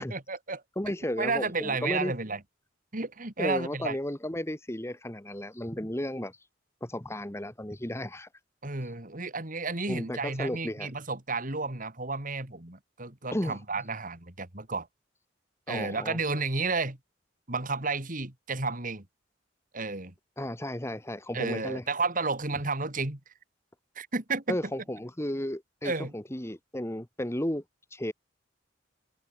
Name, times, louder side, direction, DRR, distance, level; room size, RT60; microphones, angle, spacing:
voice 1, 0.0-0.6 1.2-2.4 2.9-4.0 8.6-14.9 15.7-17.0 17.5-19.1 19.7-20.1 21.3-23.2 24.0-24.6 25.8-26.1, right 3 dB, 45° right, 3.1 m, -32 dB
voice 2, 0.8-2.1 3.4-6.4 6.8-8.3 9.9-10.9 13.3-13.6 15.7-16.2 20.4-21.8 24.5-27.6 27.9-28.1, left 1 dB, 15° left, 1.9 m, -34 dB
head